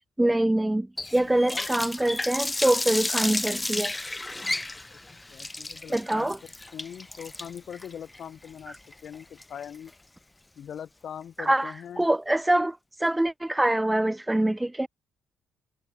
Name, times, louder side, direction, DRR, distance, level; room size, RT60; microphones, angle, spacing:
voice 1, 0.2-3.9 5.9-6.4 11.4-14.9, right 1 dB, 10° right, 0.7 m, -25 dB
Water tap faucet, 1.0-9.9, left 2 dB, 15° left, 5.6 m, -32 dB
voice 2, 1.2-1.7 4.9-5.0 5.3-9.9 10.6-12.0, left 9 dB, 60° left, 7.7 m, -42 dB
cardioid pair, 90°, 0 cm